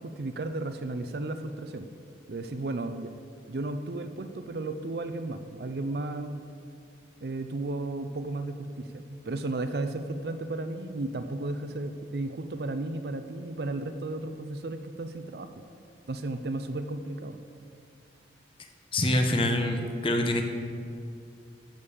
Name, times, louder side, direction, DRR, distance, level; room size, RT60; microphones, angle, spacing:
voice 1, 0.0-1.9 2.3-3.1 3.5-6.4 7.2-15.5 16.1-17.4, right 2 dB, 55° right, 8 dB, 0.5 m, -34 dB
voice 2, 18.9-20.4, left 1 dB, 30° left, 4 dB, 0.9 m, -25 dB
13.0 x 5.3 x 7.1 m, 2.4 s
head